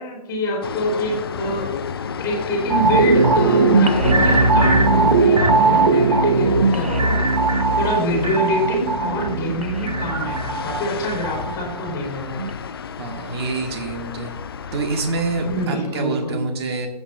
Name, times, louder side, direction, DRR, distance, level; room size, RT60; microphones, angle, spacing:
voice 1, 0.0-1.7 2.2-7.2 7.8-12.4 15.4-16.4, left 1 dB, 15° left, -2 dB, 3.6 m, -26 dB
sound 1, 0.6-15.7, left 7 dB, 35° left, 0.4 m, -29 dB
sound 2, 2.7-12.0 12.4-12.5, right 4 dB, 55° right, 0.8 m, -19 dB
voice 2, 13.0-14.4 14.7-16.9, right 3 dB, 35° right, 3 dB, 1.7 m, -26 dB
14.5 x 8.4 x 2.7 m, 0.91 s
figure-of-eight pair, 135°, 21 cm